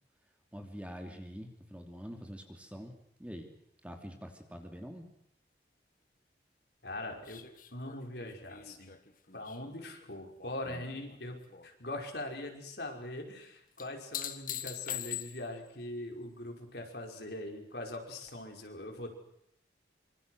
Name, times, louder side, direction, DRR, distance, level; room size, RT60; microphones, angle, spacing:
voice 1, 0.5-3.5 3.8-5.1 10.7-11.0, equal, 5° right, 3 dB, 3.1 m, -45 dB
voice 2, 6.8-8.9 9.3-19.1, left 1 dB, 65° left, 2 dB, 5.5 m, -42 dB
sound 1, 7.3-10.7 11.1-11.7 13.8-15.7 18.3-18.4, left 10 dB, 45° left, 1.8 m, -43 dB
26.5 x 26.0 x 6.6 m, 0.76 s
head